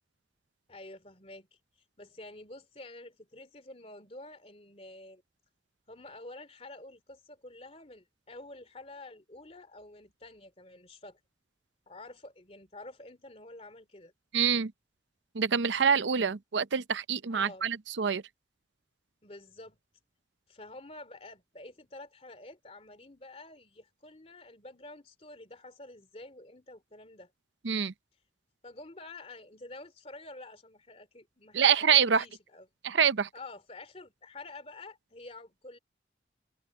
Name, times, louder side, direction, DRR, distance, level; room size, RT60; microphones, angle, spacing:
voice 1, 0.7-1.5 2.0-5.2 5.9-11.2 11.9-14.1 17.3-17.7 19.2-19.8 20.5-27.3 28.6-32.7 33.3-35.8, left 2 dB, 35° left, 2.8 m, -49 dB
voice 2, 14.3-14.7 15.3-18.2 27.6-27.9 31.5-32.2 32.8-33.3, right 7 dB, 80° right, 0.6 m, -26 dB
head